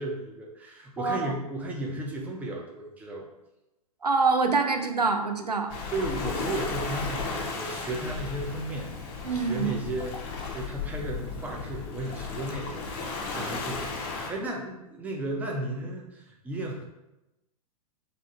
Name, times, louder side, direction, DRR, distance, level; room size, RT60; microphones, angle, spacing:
voice 1, 0.0-3.3 5.9-8.9 9.3-16.8, right 1 dB, 10° right, -1 dB, 0.6 m, -34 dB
voice 2, 1.0-1.3 4.0-5.7 9.2-9.7, right 4 dB, 90° right, 5 dB, 0.5 m, -25 dB
Waves surf, 5.7-14.3, left 4 dB, 30° left, 0.7 m, -35 dB
3.5 x 2.6 x 4.2 m, 0.95 s
figure-of-eight pair, 105°, 20 cm